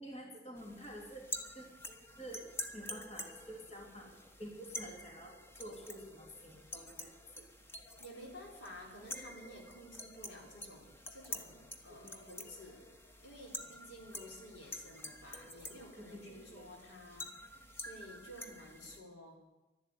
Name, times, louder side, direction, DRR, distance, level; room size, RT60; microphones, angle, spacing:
voice 1, 0.0-1.7 2.2-4.1 4.4-7.4 11.9-12.3 16.0-16.7, right 1 dB, 35° left, -1 dB, 3.2 m, -49 dB
sound 1, 0.6-19.0, left 1 dB, 10° left, 1.1 m, -48 dB
voice 2, 8.0-12.9 13.2-19.4, equal, 80° left, 0 dB, 4.2 m, -52 dB
12.5 x 11.0 x 9.7 m, 1.1 s
head